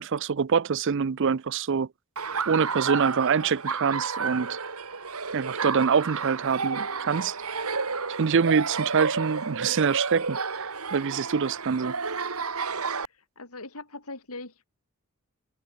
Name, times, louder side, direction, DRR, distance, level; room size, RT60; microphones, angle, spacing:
voice 1, 0.0-1.9 2.5-4.6 5.3-7.4 8.2-11.9, right 6 dB, 55° right, 0.5 m, -25 dB
Laughter, 2.2-13.1, right 5 dB, 80° right, 2.6 m, -31 dB
voice 2, 12.9-14.7, left 2 dB, 80° left, 6.7 m, -41 dB
head